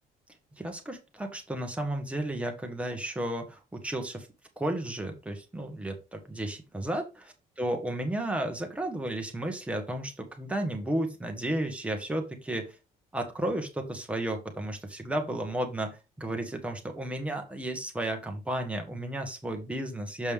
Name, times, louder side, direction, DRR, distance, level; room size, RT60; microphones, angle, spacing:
voice 1, 0.6-4.3 4.6-7.1 7.6-12.7 13.1-20.3, right 1 dB, 10° right, 3 dB, 1.3 m, -33 dB
7.1 x 5.2 x 3.5 m, 0.28 s
cardioid pair, 160°, 16 cm